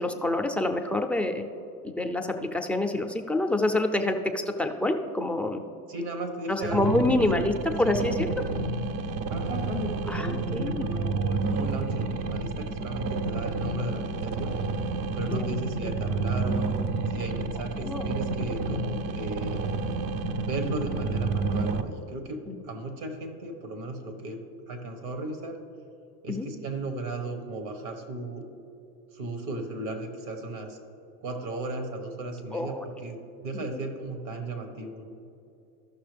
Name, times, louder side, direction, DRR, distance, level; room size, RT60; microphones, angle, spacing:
voice 1, 0.0-1.4 1.8-5.6 6.5-8.3 10.1-10.9 15.3-15.5 17.8-18.1 22.5-22.6 26.3-26.5 32.5-32.8 33.5-33.8, left 2 dB, 5° left, 3 dB, 0.4 m, -27 dB
voice 2, 5.9-7.4 7.8-8.0 9.3-14.6 15.1-16.7 17.1-19.6 20.4-24.4 24.7-25.6 26.2-28.4 29.1-30.8 31.2-35.0, right 2 dB, 75° right, 5 dB, 1.6 m, -35 dB
sound 1, 6.6-21.8, right 3 dB, 50° right, 0.6 m, -30 dB
14.0 x 5.9 x 3.4 m, 2.7 s
supercardioid pair, 95°, 45 cm